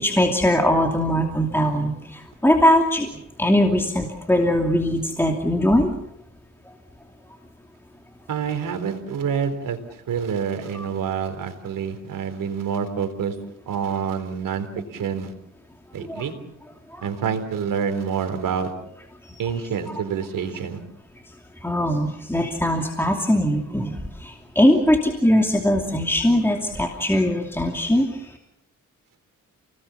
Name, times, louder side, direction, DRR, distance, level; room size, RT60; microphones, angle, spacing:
voice 1, 0.0-3.1 3.4-5.9 10.7-10.9 16.1-16.2 16.9-17.1 19.2-19.4 21.6-28.4, equal, 5° left, 2 dB, 2.7 m, -21 dB
voice 2, 8.3-9.8 10.1-13.4 13.7-15.3 15.9-16.3 17.0-18.7 19.4-20.8, right 7 dB, 90° right, 9 dB, 3.9 m, -27 dB
29.5 x 20.0 x 7.1 m, 0.80 s
cardioid pair, 90°, 32 cm